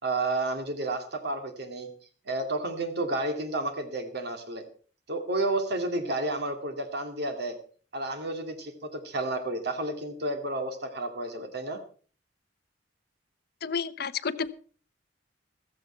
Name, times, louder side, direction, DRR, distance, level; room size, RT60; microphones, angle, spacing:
voice 1, 0.0-1.9 2.3-4.6 5.1-7.6 7.9-11.8, right 2 dB, 60° right, 6 dB, 2.3 m, -31 dB
voice 2, 13.6-14.6, left 6 dB, 55° left, 14 dB, 0.7 m, -31 dB
15.0 x 14.0 x 4.4 m, 0.41 s
head